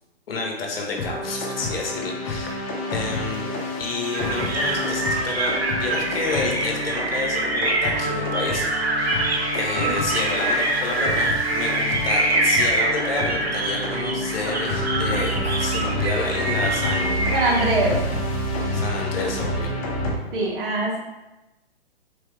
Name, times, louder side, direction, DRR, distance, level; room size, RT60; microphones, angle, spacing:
voice 1, 0.3-2.6 2.9-8.7 9.0-9.3 9.5-17.3 18.7-19.8, left 3 dB, 65° left, 0 dB, 1.1 m, -30 dB
sound 1, 1.0-20.1, left 1 dB, 35° left, 1.2 m, -28 dB
sound 2, 4.1-17.7, right 2 dB, 80° right, 1.0 m, -25 dB
voice 2, 17.3-18.0 20.3-21.0, right 2 dB, 55° right, -2 dB, 1.3 m, -23 dB
4.1 x 3.3 x 3.3 m, 1.0 s
hypercardioid pair, 125°, 31 cm